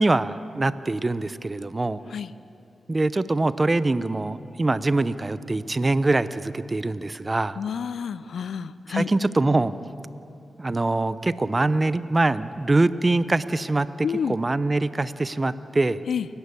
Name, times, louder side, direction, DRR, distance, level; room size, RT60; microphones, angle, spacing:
voice 1, 0.0-2.0 2.9-7.6 8.9-9.7 10.6-13.9 14.3-16.0, right 2 dB, 30° right, 15 dB, 0.7 m, -23 dB
voice 2, 7.6-9.1 14.0-14.4 16.1-16.3, left 7 dB, 75° left, 16 dB, 0.5 m, -29 dB
29.0 x 11.5 x 8.4 m, 2.7 s
cardioid pair, 60°, 0 cm